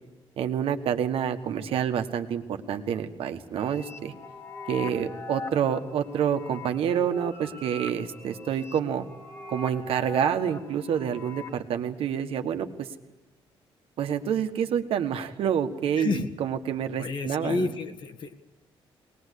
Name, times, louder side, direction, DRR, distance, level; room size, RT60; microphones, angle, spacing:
voice 1, 0.4-4.1 4.7-9.1 9.5-12.9 14.0-17.8, right 8 dB, 75° right, 7 dB, 1.5 m, -28 dB
sound 1, 3.6-11.6, left 2 dB, 25° left, 1.8 m, -41 dB
voice 2, 16.0-16.3 17.0-18.3, left 4 dB, 55° left, 6 dB, 1.7 m, -30 dB
21.5 x 20.0 x 8.4 m, 1.1 s
cardioid pair, 150°, 10 cm